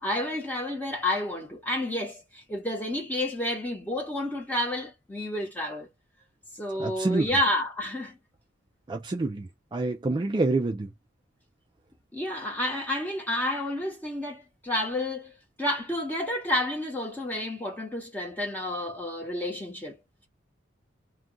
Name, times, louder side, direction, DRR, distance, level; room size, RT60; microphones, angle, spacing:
voice 1, 0.0-5.9 6.6-8.2 12.1-20.0, left 1 dB, 10° left, 1.0 m, -30 dB
voice 2, 6.8-7.3 8.9-10.9, right 2 dB, 25° right, 0.3 m, -27 dB
2.4 x 2.2 x 3.7 m
head